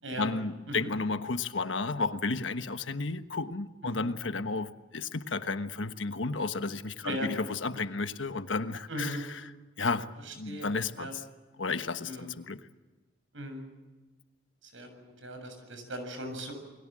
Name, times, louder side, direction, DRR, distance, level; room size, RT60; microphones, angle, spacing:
voice 1, 0.2-9.4 9.8-10.1 10.3-11.1 11.6-12.6, left 3 dB, 85° left, 1.3 m, -32 dB
voice 2, 8.9-9.2 10.3-11.1 12.0-12.3 13.3-13.6 14.6-16.5, equal, 85° right, 7.3 m, -38 dB
29.0 x 22.0 x 7.6 m
head